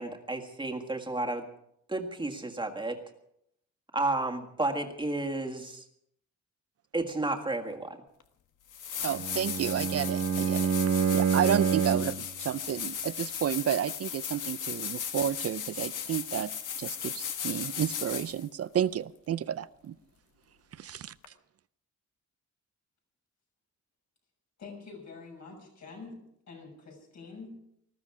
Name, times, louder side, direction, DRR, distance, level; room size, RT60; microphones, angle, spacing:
voice 1, 0.0-1.5 1.9-3.0 3.9-5.8 6.9-8.0, right 2 dB, 15° right, 2 dB, 1.8 m, -32 dB
sound 1, 8.2-8.3 8.7-18.5 21.2-21.3, left 8 dB, 85° left, 1.4 m, -36 dB
voice 2, 9.0-10.7 11.1-16.5 16.8-20.0 20.7-21.1, right 9 dB, 55° right, 17 dB, 0.5 m, -31 dB
Bowed string instrument, 9.1-12.3, right 7 dB, 70° right, 1.2 m, -27 dB
voice 3, 24.6-26.2 26.5-27.5, left 4 dB, 65° left, 0 dB, 6.9 m, -46 dB
19.5 x 15.0 x 4.9 m, 0.75 s
wide cardioid pair, 145°, 30 cm